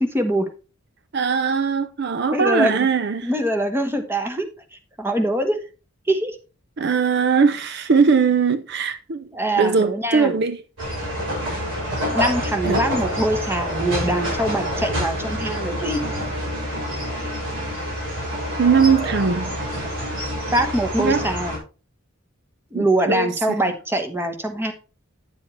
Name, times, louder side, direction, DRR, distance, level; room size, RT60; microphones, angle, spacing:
voice 1, 0.0-0.5 2.3-2.9 3.2-4.5 5.0-5.6 6.1-6.4 9.3-10.4 12.1-16.0 20.5-21.6 22.7-24.7, right 1 dB, 10° right, 1.2 m, -23 dB
voice 2, 1.1-3.3 6.8-9.3 9.6-10.6 12.6-12.8 18.6-19.6 21.0-21.3 22.7-23.3, right 5 dB, 55° right, 0.5 m, -20 dB
sound 1, 10.8-21.6, equal, 70° right, 6.2 m, -27 dB
10.0 x 7.5 x 3.2 m
head